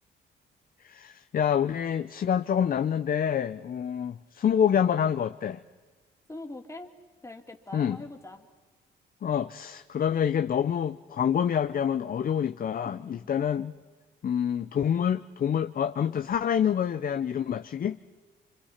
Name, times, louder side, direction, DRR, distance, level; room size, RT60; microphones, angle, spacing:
voice 1, 0.8-5.6 7.7-8.0 9.2-13.7 14.2-18.0, left 8 dB, 45° left, 10 dB, 0.7 m, -27 dB
voice 2, 6.3-6.9 7.2-8.5 12.8-13.3, left 2 dB, 15° left, 3 dB, 2.8 m, -43 dB
27.0 x 25.5 x 5.8 m, 1.4 s
cardioid pair, 90°, 20 cm